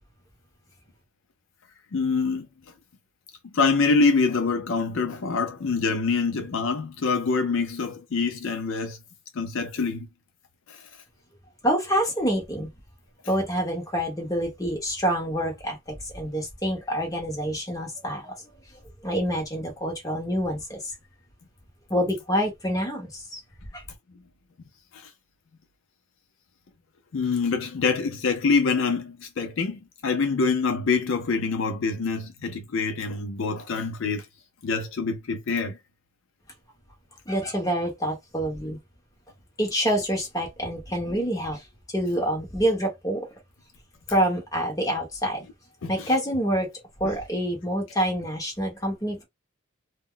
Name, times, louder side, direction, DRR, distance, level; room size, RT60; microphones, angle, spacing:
voice 1, 1.9-2.5 3.5-9.0 9.3-10.1 10.7-10.8 24.9-25.1 27.1-34.3 34.6-35.8 45.8-46.1 47.0-47.1, left 4 dB, 65° left, 0.4 m, -25 dB
voice 2, 11.6-12.7 13.3-20.9 21.9-23.4 23.7-23.8 37.3-38.8 39.6-43.3 44.1-45.4 45.9-46.7 47.0-49.2, equal, 15° left, 0.9 m, -27 dB
2.2 x 2.0 x 3.7 m
head